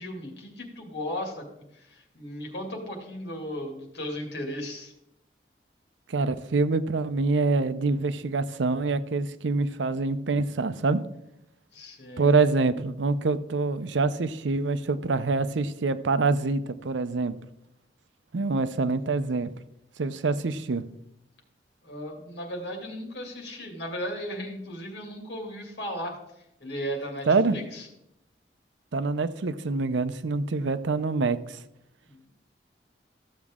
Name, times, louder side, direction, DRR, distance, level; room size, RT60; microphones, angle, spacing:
voice 1, 0.0-4.9 11.7-12.4 18.6-18.7 21.8-26.2 26.6-27.9 32.1-32.3, equal, 70° left, 1 dB, 2.3 m, -36 dB
voice 2, 6.1-11.0 12.2-17.4 18.3-19.5 20.0-20.8 27.3-27.6 28.9-31.4, right 3 dB, 90° right, 13 dB, 0.6 m, -25 dB
14.0 x 7.3 x 3.6 m, 0.83 s
head